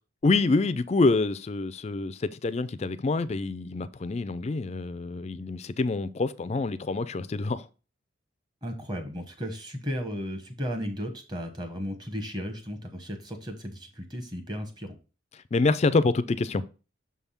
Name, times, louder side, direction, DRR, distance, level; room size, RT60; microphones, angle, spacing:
voice 1, 0.2-7.7 15.3-16.6, left 3 dB, 35° left, 0.4 m, -26 dB
voice 2, 8.6-15.0, equal, 20° right, 1.1 m, -35 dB
6.6 x 3.5 x 5.6 m
head